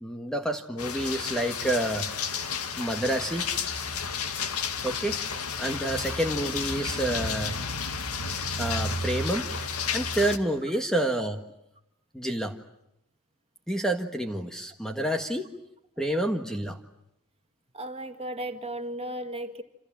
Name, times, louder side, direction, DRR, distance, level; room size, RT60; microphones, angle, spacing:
voice 1, 0.0-2.1 2.8-3.5 4.8-5.2 5.6-7.5 8.6-9.5 9.9-11.4 12.1-12.6 13.7-15.5 16.0-16.8, right 1 dB, 5° left, 5 dB, 1.6 m, -28 dB
sound 1, 0.8-10.4, left 5 dB, 80° left, 2.2 m, -32 dB
voice 2, 17.7-19.6, right 1 dB, 25° right, 7 dB, 2.1 m, -35 dB
28.5 x 27.5 x 7.6 m, 0.82 s
head